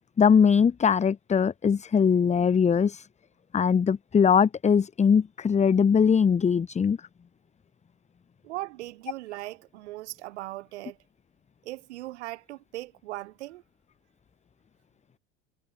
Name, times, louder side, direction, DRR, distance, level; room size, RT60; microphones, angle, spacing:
voice 1, 0.2-3.1 3.5-7.0, left 6 dB, 20° left, 0.9 m, -21 dB
voice 2, 8.4-11.0 11.6-13.6, right 17 dB, 90° right, 2.9 m, -39 dB
supercardioid pair, 95°, 33 cm